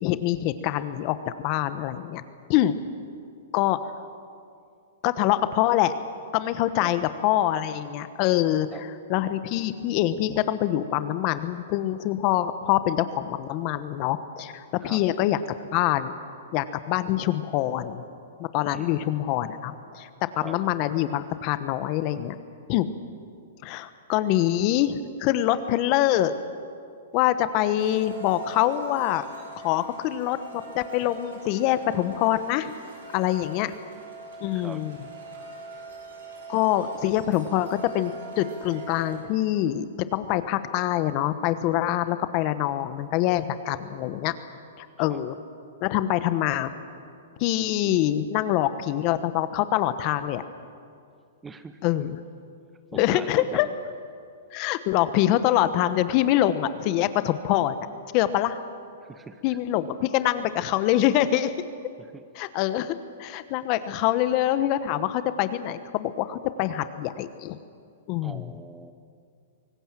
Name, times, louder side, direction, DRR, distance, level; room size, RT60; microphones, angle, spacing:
voice 1, 0.0-2.2 2.5-2.7 3.5-3.8 5.0-5.9 6.3-15.4 15.7-16.2 16.5-18.0 18.4-20.1 20.3-22.4 22.7-22.9 23.6-26.3 27.1-29.2 29.6-30.4 30.7-32.7 33.1-33.7 34.4-35.0 36.5-44.3 44.8-45.3 45.8-46.7 47.4-50.4 51.8-52.2 52.9-53.7 54.5-57.8 58.1-58.6 59.4-61.5 62.3-67.6 68.1-68.4, left 13 dB, 40° left, 12 dB, 1.2 m, -25 dB
voice 2, 18.7-19.3 20.4-20.6 31.0-31.1 34.5-34.8 45.1-45.2 51.4-51.8 52.9-53.7 59.0-59.4 62.0-62.3 68.2-68.9, right 4 dB, 15° right, 11 dB, 1.1 m, -42 dB
sound 1, 27.8-39.2, right 3 dB, 75° right, 7.0 m, -43 dB
25.0 x 18.5 x 7.6 m, 2.4 s
hypercardioid pair, 135°, 0 cm